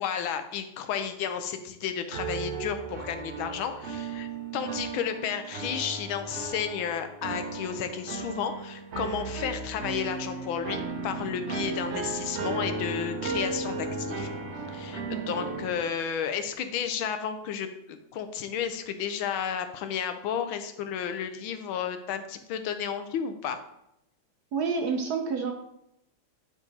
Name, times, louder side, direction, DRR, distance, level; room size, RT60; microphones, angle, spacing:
voice 1, 0.0-14.3 14.7-23.6, left 8 dB, 80° left, 8 dB, 1.5 m, -32 dB
sound 1, 2.1-15.8, right 3 dB, 85° right, 0.5 m, -35 dB
voice 2, 15.1-15.4 24.5-25.5, right 5 dB, 65° right, 4 dB, 1.0 m, -29 dB
9.7 x 4.1 x 4.0 m, 0.81 s
omnidirectional pair, 2.2 m